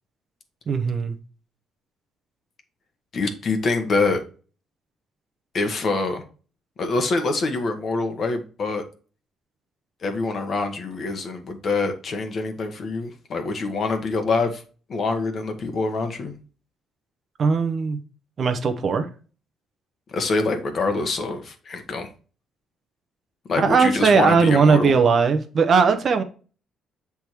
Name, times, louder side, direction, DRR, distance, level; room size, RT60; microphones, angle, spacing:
voice 1, 0.7-1.2 17.4-18.0 18.4-19.1 23.6-26.2, right 5 dB, 35° right, 0.7 m, -19 dB
voice 2, 3.1-4.2 5.5-6.2 6.8-8.8 10.0-14.6 14.9-16.3 20.1-22.1 23.5-24.9, left 3 dB, 35° left, 1.2 m, -25 dB
8.0 x 3.5 x 4.4 m
cardioid pair, 165°, 0 cm